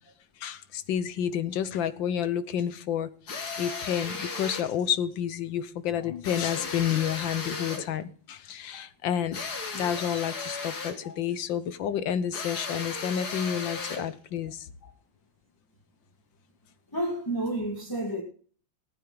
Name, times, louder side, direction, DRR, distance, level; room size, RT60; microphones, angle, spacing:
voice 1, 0.4-3.1 3.6-14.7, left 9 dB, 90° left, 1.7 m, -30 dB
sound 1, 3.3-4.7 6.2-7.9 9.3-11.1 12.3-14.1, left 4 dB, 55° left, 2.5 m, -35 dB
voice 2, 16.9-18.2, right 1 dB, 10° left, 1.9 m, -31 dB
18.5 x 9.2 x 3.9 m
omnidirectional pair, 2.0 m